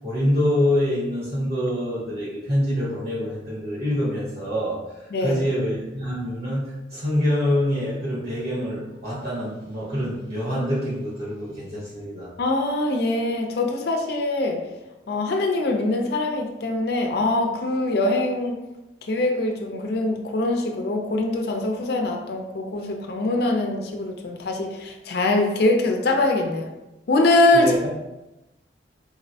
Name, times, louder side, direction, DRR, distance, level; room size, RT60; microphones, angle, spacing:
voice 1, 0.0-4.7 5.2-12.3 27.5-27.9, equal, 60° right, -7 dB, 1.2 m, -25 dB
voice 2, 5.1-5.4 12.4-14.6 15.1-18.6 19.1-26.7 27.1-27.9, left 2 dB, 60° left, 2 dB, 0.4 m, -23 dB
3.9 x 2.0 x 2.7 m, 1.0 s
head